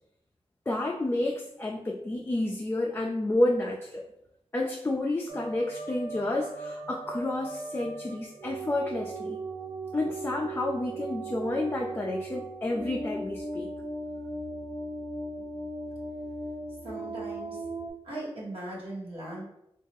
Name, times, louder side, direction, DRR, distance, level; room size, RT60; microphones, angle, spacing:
voice 1, 0.7-4.0 4.5-9.4 9.9-13.7, left 2 dB, 25° left, -1 dB, 0.3 m, -30 dB
sound 1, 5.3-17.9, right 2 dB, 90° right, 0.8 m, -38 dB
voice 2, 16.8-17.6 18.0-19.4, right 1 dB, 65° right, -5 dB, 1.3 m, -39 dB
3.1 x 2.4 x 3.4 m, 0.80 s
wide cardioid pair, 75°, 10 cm